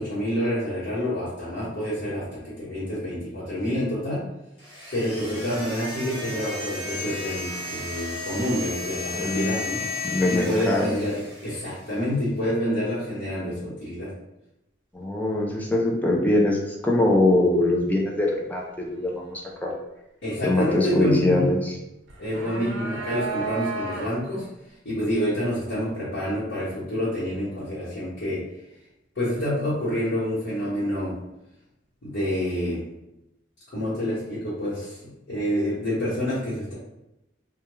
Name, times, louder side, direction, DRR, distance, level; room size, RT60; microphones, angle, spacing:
voice 1, 0.0-4.2 4.9-9.8 10.3-14.1 20.2-21.5 22.2-24.5 24.8-28.5 29.1-31.2 32.0-32.9 33.7-36.7, equal, 75° left, -12 dB, 1.0 m, -28 dB
sound 1, 4.6-12.0, left 3 dB, 30° left, 0.9 m, -34 dB
voice 2, 9.1-9.6 10.0-10.9 14.9-19.7 20.4-21.7, left 1 dB, 10° left, -2 dB, 0.3 m, -23 dB
sound 2, 22.1-24.4, right 4 dB, 80° right, 0.4 m, -32 dB
2.2 x 2.2 x 3.0 m, 0.90 s
head